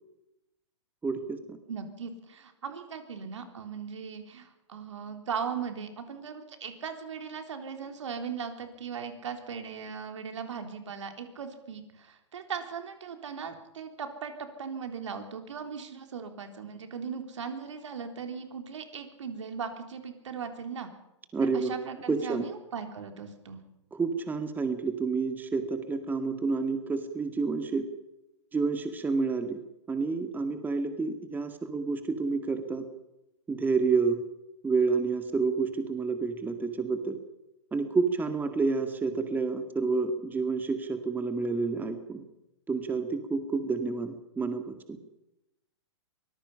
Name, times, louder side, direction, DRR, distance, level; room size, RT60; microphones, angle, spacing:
voice 1, 1.0-1.6 21.3-21.7 22.1-22.4 23.9-27.9 28.5-29.6 29.9-32.8 33.5-34.2 34.6-37.2 37.7-42.2 42.7-45.0, right 4 dB, 10° right, 7 dB, 1.9 m, -29 dB
voice 2, 1.7-20.9 21.4-23.6, right 6 dB, 70° right, 6 dB, 3.7 m, -38 dB
24.0 x 19.5 x 5.7 m, 0.91 s
hypercardioid pair, 120°, 16 cm